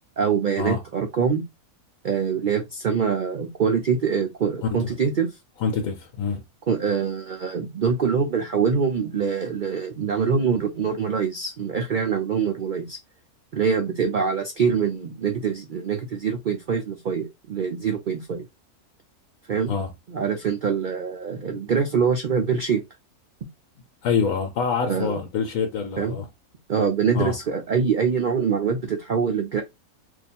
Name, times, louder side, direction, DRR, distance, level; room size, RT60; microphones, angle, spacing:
voice 1, 0.2-1.4 2.0-5.4 6.7-13.0 13.5-18.4 19.5-19.8 20.1-22.8 24.9-25.2 26.0-26.2 26.7-29.6, right 6 dB, 70° right, 0.4 m, -24 dB
voice 2, 5.6-6.4 19.7-19.9 24.0-26.3 27.1-27.3, left 6 dB, 70° left, 1.1 m, -26 dB
2.7 x 2.3 x 4.2 m
omnidirectional pair, 1.6 m